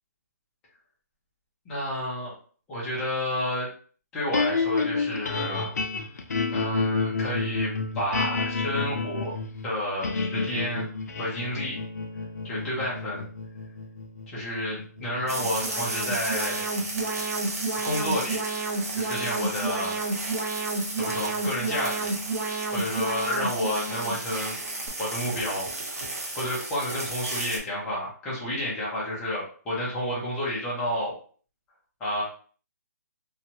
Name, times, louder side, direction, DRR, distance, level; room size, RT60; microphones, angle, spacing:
voice 1, 1.7-2.3 2.7-3.7 4.1-5.7 6.5-9.4 9.6-10.9 11.2-11.8 12.4-13.2 14.3-16.6 17.8-18.4 19.0-20.0 21.0-22.1 22.7-24.6 25.0-25.7 26.4-31.2 32.0-32.2, left 1 dB, 5° left, -7 dB, 0.6 m, -30 dB
sound 1, 4.3-16.6, left 4 dB, 65° left, 0.5 m, -30 dB
Alarm, 15.0-24.9, right 3 dB, 85° right, 1.0 m, -31 dB
sound 2, 15.3-27.6, right 2 dB, 55° right, 0.9 m, -35 dB
2.7 x 2.2 x 2.8 m, 0.43 s
hypercardioid pair, 175°, 9 cm